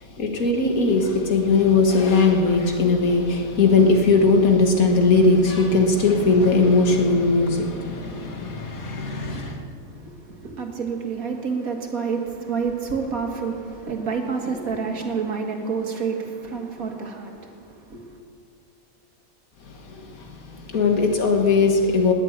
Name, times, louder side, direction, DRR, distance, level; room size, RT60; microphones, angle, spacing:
voice 1, 0.0-9.6 19.6-22.1, left 3 dB, 80° left, 2 dB, 2.1 m, -19 dB
voice 2, 9.9-18.2, right 5 dB, 80° right, 2 dB, 2.2 m, -29 dB
19.5 x 7.4 x 9.2 m, 2.5 s
omnidirectional pair, 1.5 m